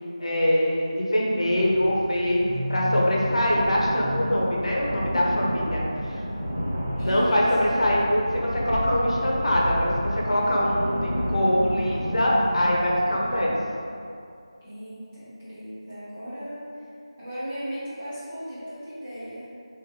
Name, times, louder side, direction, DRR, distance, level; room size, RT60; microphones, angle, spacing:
voice 1, 0.2-6.1 7.0-13.5, equal, 65° left, -4 dB, 0.9 m, -23 dB
sound 1, 1.4-13.5, equal, 30° right, 1.1 m, -30 dB
voice 2, 7.0-7.5 14.6-16.9 17.2-19.5, equal, 15° right, -13 dB, 0.7 m, -36 dB
3.3 x 3.0 x 3.7 m, 2.4 s
figure-of-eight pair, 180°, 3 cm